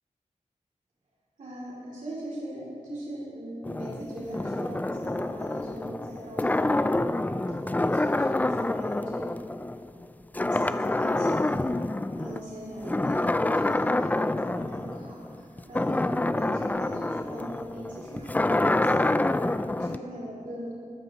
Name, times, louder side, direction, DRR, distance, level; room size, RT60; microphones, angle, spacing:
voice 1, 1.4-9.3 10.5-19.3 19.7-20.7, right 1 dB, 80° right, -7 dB, 2.7 m, -41 dB
sound 1, 3.6-10.1 10.3-12.4 12.8-20.0, left 2 dB, 15° left, 0.3 m, -27 dB
22.0 x 13.5 x 2.9 m, 2.7 s
wide cardioid pair, 75°, 13 cm